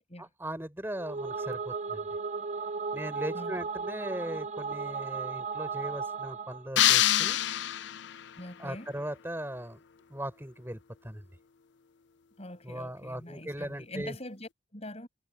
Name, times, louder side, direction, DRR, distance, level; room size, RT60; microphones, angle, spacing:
voice 1, 0.2-2.1 2.9-7.4 8.6-9.8 10.1-11.2 12.6-14.1, right 1 dB, 10° right, 4.8 m, -38 dB
sound 1, 0.9-6.7, right 5 dB, 35° right, 0.6 m, -35 dB
sound 2, 6.8-8.3, left 13 dB, 60° left, 0.5 m, -25 dB
voice 2, 8.4-8.9 12.4-15.1, left 1 dB, 35° left, 7.5 m, -43 dB
head